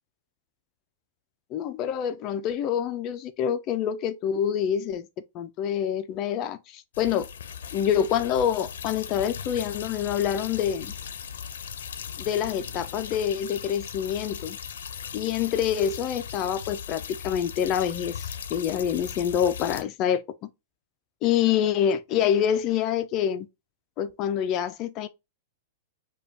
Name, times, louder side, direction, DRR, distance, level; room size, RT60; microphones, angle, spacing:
voice 1, 1.5-5.1 5.3-7.3 7.7-10.9 12.2-14.6 15.1-20.5 21.2-23.5 24.0-25.1, left 9 dB, 30° left, 0.3 m, -26 dB
sound 1, 6.9-19.8, left 8 dB, 85° left, 0.5 m, -38 dB
5.0 x 2.2 x 2.6 m
supercardioid pair, 165°, 0 cm